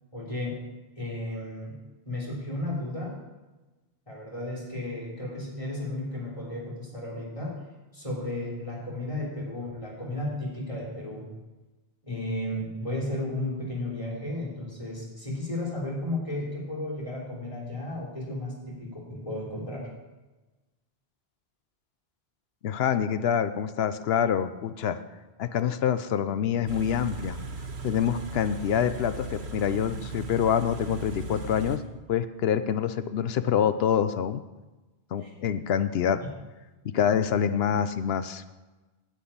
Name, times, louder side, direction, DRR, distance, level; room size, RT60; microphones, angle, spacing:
voice 1, 0.1-0.6 1.0-1.8 2.0-3.2 4.1-7.5 7.9-11.3 12.0-19.9 35.2-35.3 36.2-36.3 36.9-37.0, left 1 dB, 30° left, -4 dB, 3.3 m, -34 dB
voice 2, 22.6-25.0 25.4-27.4 27.8-31.8 32.1-34.4 35.1-36.2 36.9-38.4, left 8 dB, 75° left, 12 dB, 0.8 m, -26 dB
Car / Idling, 26.7-31.8, right 3 dB, 80° right, 1.4 m, -37 dB
9.8 x 6.0 x 8.6 m, 1.1 s
omnidirectional pair, 1.1 m